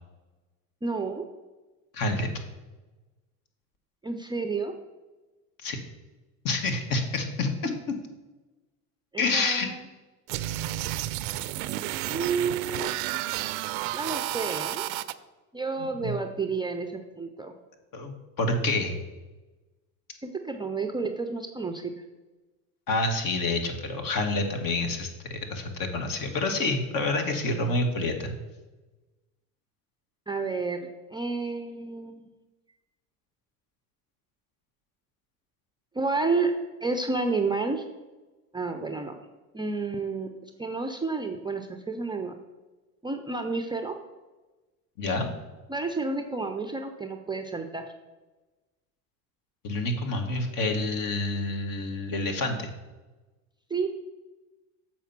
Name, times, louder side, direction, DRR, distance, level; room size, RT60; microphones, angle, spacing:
voice 1, 0.8-1.2 4.0-4.7 9.1-9.8 12.1-13.1 13.9-14.9 15.5-17.5 20.2-22.0 30.3-32.3 35.9-36.5 36.8-37.8 38.5-39.1 39.5-40.3 40.6-42.3 43.0-44.0 45.7-47.8 53.7-53.9, right 4 dB, 10° right, 4 dB, 0.5 m, -30 dB
voice 2, 1.9-2.3 5.6-5.8 6.4-7.9 9.2-9.7 15.8-16.1 17.9-18.9 22.9-28.3 45.0-45.3 49.6-52.7, left 2 dB, 50° left, 5 dB, 1.5 m, -28 dB
sound 1, 10.3-15.1, right 15 dB, 75° right, 0.5 m, -31 dB
7.0 x 4.4 x 5.9 m, 1.2 s
supercardioid pair, 90°, 42 cm